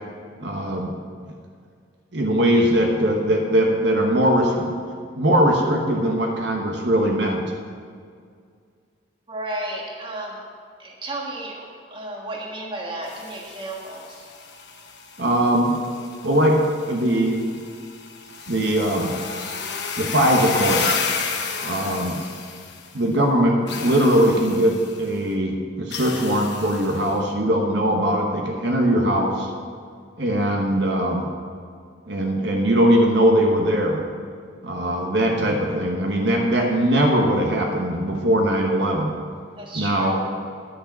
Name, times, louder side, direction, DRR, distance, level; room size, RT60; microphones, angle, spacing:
voice 1, 0.4-0.9 2.1-4.7 5.2-7.4 15.2-15.8 16.2-16.6 16.9-17.4 18.5-19.2 20.0-21.0 21.6-22.2 22.9-29.5 30.2-31.3 32.1-34.0 34.6-39.1 39.7-40.2, equal, 60° right, 0 dB, 1.2 m, -20 dB
voice 2, 9.3-10.4 10.8-14.3 39.6-40.2, right 1 dB, 25° right, -1 dB, 1.5 m, -33 dB
sound 1, 13.0-23.1 23.7-25.1 25.9-27.1, left 5 dB, 60° left, 1.1 m, -32 dB
10.5 x 6.6 x 7.4 m, 2.1 s
head